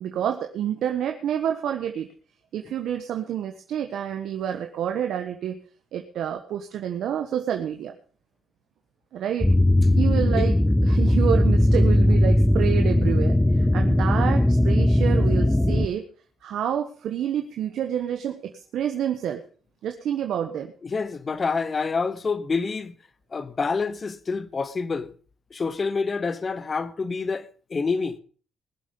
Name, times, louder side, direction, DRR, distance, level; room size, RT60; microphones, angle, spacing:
voice 1, 0.0-2.1 2.5-5.6 5.9-7.9 9.1-9.5 9.9-16.0 16.4-19.4 19.8-20.7, right 9 dB, 75° right, 1.3 m, -28 dB
sound 1, 9.4-15.9, left 1 dB, 5° left, 0.8 m, -19 dB
voice 2, 20.8-22.9 23.3-25.1 25.5-28.2, left 4 dB, 35° left, 1.1 m, -27 dB
20.5 x 7.7 x 5.3 m
cardioid pair, 90°, 0 cm